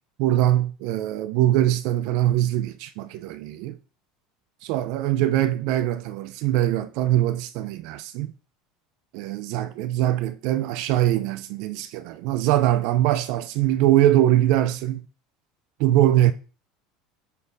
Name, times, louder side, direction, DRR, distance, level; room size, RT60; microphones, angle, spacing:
voice 1, 0.2-3.8 4.6-8.3 9.1-15.0 15.8-16.3, right 13 dB, 65° right, 0.5 m, -22 dB
7.3 x 4.1 x 4.0 m
hypercardioid pair, 85°, 0 cm